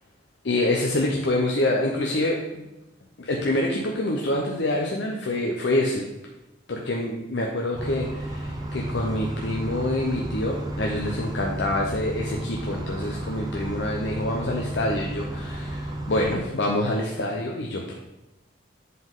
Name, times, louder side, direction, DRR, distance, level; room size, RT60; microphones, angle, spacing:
voice 1, 0.4-2.7 3.2-6.1 6.7-17.9, left 1 dB, 75° left, 0 dB, 0.6 m, -26 dB
sound 1, 7.8-16.4, right 1 dB, 20° right, 0.6 m, -32 dB
7.6 x 3.9 x 3.7 m, 0.97 s
head